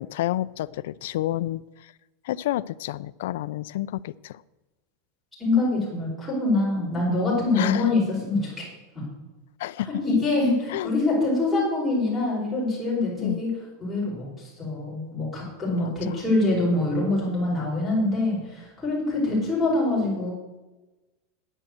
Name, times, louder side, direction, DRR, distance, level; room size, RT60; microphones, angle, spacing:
voice 1, 0.0-1.6 2.2-4.4 7.5-7.9 9.6-9.9 10.7-10.9 13.2-13.4 16.0-16.1, left 14 dB, 65° left, 16 dB, 0.3 m, -29 dB
voice 2, 5.4-8.6 10.0-13.5 13.8-20.3, left 2 dB, 5° left, -8 dB, 5.0 m, -24 dB
10.0 x 8.9 x 7.9 m, 1.1 s
supercardioid pair, 175°, 0 cm